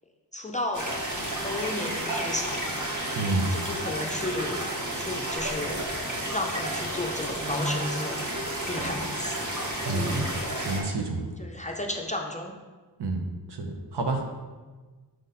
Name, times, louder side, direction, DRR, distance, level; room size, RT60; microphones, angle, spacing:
voice 1, 0.3-1.0 1.4-2.6 3.5-5.9 6.3-8.2 8.6-9.5 11.4-12.6, left 1 dB, 20° left, 2 dB, 0.5 m, -33 dB
sound 1, 0.7-10.8, right 1 dB, 45° right, 1.3 m, -32 dB
voice 2, 3.2-3.5 9.9-11.3 13.0-13.2 13.5-14.2, right 2 dB, 70° right, 4 dB, 0.9 m, -29 dB
sound 2, 5.4-5.9 6.4-8.1 8.6-10.4, equal, 20° right, 1.0 m, -37 dB
6.3 x 4.0 x 4.0 m, 1.3 s
wide cardioid pair, 110°, 42 cm